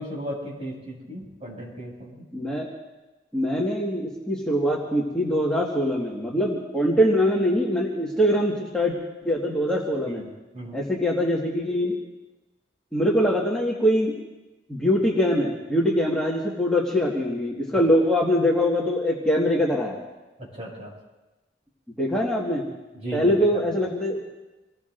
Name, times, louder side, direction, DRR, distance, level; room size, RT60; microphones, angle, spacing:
voice 1, 0.0-2.2 10.0-10.8 20.4-20.9 22.9-23.6, equal, 35° right, -3 dB, 6.3 m, -36 dB
voice 2, 2.3-2.7 3.3-8.9 9.3-10.2 10.7-12.0 12.9-14.2 14.7-20.0 22.0-22.6 23.1-24.3, equal, 5° left, -5 dB, 1.7 m, -23 dB
28.5 x 19.5 x 2.6 m, 1.1 s
head